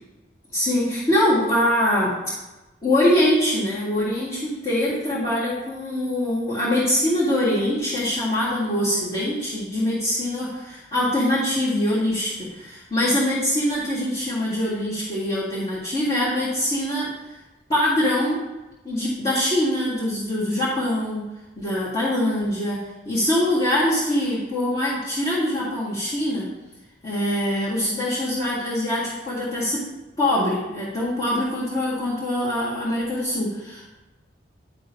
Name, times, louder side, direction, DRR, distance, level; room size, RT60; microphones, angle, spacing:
voice 1, 0.5-2.1 2.8-17.1 17.7-18.4 18.8-21.3 21.6-22.8 23.1-26.5 27.0-29.8 30.2-33.9, left 1 dB, 30° left, -11 dB, 2.1 m, -23 dB
10.5 x 3.6 x 5.3 m, 1.0 s
head